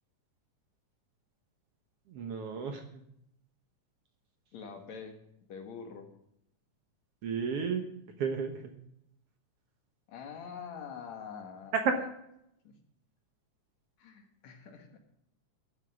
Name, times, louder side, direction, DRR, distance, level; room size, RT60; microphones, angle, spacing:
voice 1, 2.1-3.0 7.2-7.9 8.2-8.7 11.8-11.9, right 6 dB, 60° right, 5 dB, 1.9 m, -32 dB
voice 2, 4.5-5.2 5.5-6.1 10.1-12.0 12.6-12.7 14.0-15.0, left 6 dB, 65° left, 4 dB, 2.9 m, -45 dB
12.0 x 7.5 x 7.6 m, 0.75 s
omnidirectional pair, 3.5 m